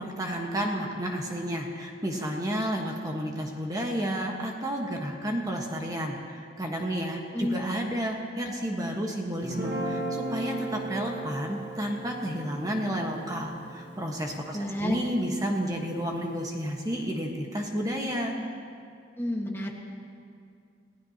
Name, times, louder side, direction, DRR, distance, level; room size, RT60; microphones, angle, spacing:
voice 1, 0.0-18.4, equal, 20° right, 0 dB, 1.3 m, -31 dB
Guitar, 9.4-15.7, right 1 dB, 70° right, 1.6 m, -37 dB
voice 2, 14.5-15.0 19.2-19.7, left 1 dB, 15° left, 0 dB, 1.5 m, -30 dB
29.5 x 17.0 x 2.9 m, 2.3 s
head